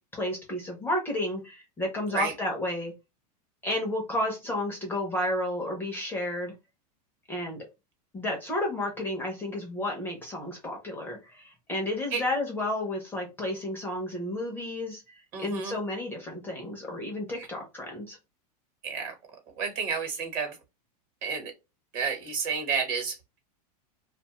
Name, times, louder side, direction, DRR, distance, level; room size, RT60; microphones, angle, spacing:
voice 1, 0.1-2.9 3.6-6.5 7.3-7.6 8.1-18.2, left 1 dB, 10° left, 0.6 m, -32 dB
voice 2, 15.3-15.8 17.4-17.5 18.8-19.1 19.6-20.5 21.2-21.5 21.9-23.1, right 5 dB, 40° right, 1.1 m, -30 dB
2.5 x 2.3 x 2.8 m
supercardioid pair, 145°, 20 cm